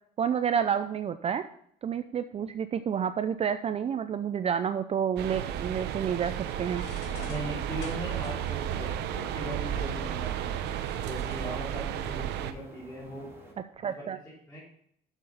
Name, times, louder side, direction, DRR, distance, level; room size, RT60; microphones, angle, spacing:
voice 1, 0.2-1.4 1.8-6.8 13.8-14.2, right 8 dB, 35° right, 11 dB, 0.5 m, -29 dB
sound 1, 5.2-12.5, right 10 dB, 80° right, 0.8 m, -33 dB
sound 2, 6.4-11.4, left 4 dB, 80° left, 2.3 m, -48 dB
voice 2, 7.3-10.7 11.0-13.3 14.0-14.1 14.5-14.6, equal, 10° left, -9 dB, 3.7 m, -39 dB
sound 3, 7.4-13.5, right 1 dB, 15° right, 3.1 m, -52 dB
8.1 x 7.0 x 5.5 m, 0.67 s
cardioid pair, 110°, 17 cm